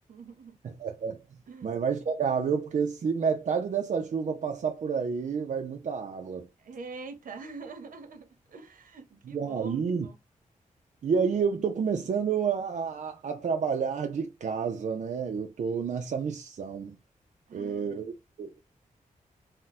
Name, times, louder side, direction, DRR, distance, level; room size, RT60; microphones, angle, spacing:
voice 1, 0.1-0.5 1.5-1.7 6.6-10.2 17.5-18.1, right 4 dB, 80° right, 0.9 m, -45 dB
voice 2, 0.6-1.2 1.6-6.5 9.2-10.1 11.0-17.0 17.5-18.6, right 6 dB, 60° right, 0.5 m, -29 dB
3.8 x 2.1 x 4.0 m
wide cardioid pair, 100°, 14 cm